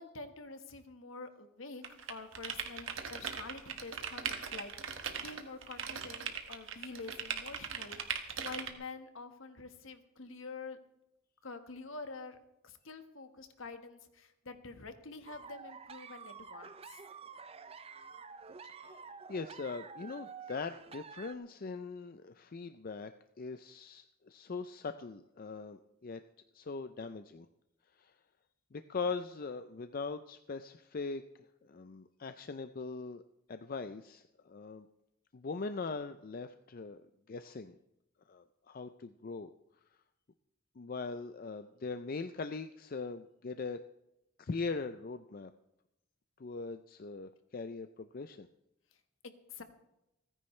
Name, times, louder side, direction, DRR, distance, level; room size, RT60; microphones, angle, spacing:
voice 1, 0.0-1.8 2.1-8.0 8.4-10.8 11.4-12.4 12.6-17.0 49.2-49.6, left 3 dB, 70° left, 8 dB, 1.4 m, -47 dB
sound 1, 1.8-8.7, right 7 dB, 65° right, 1.6 m, -39 dB
sound 2, 15.3-21.3, right 5 dB, 30° right, 0.5 m, -49 dB
voice 2, 19.3-23.1 23.4-26.2 26.5-27.5 28.0-28.1 28.7-31.2 31.6-33.2 33.5-34.9 35.3-37.0 37.3-37.7 38.3-39.5 40.8-43.8 44.4-45.5 46.4-48.5, left 4 dB, 45° left, 10 dB, 0.5 m, -41 dB
29.0 x 10.0 x 3.2 m, 0.87 s
head